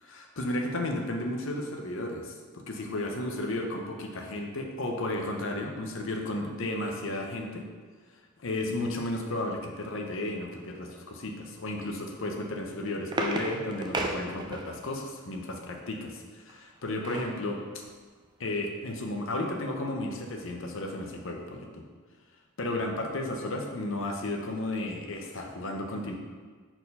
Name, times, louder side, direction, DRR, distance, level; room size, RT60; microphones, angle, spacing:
voice 1, 0.1-7.6 8.4-17.8 18.4-21.8 22.6-26.2, left 1 dB, 60° left, 2 dB, 0.8 m, -33 dB
sound 1, 12.5-15.0 16.5-17.4 17.9-18.0 18.2-18.5, right 2 dB, 20° right, 0.5 m, -34 dB
4.4 x 4.4 x 5.4 m, 1.5 s
head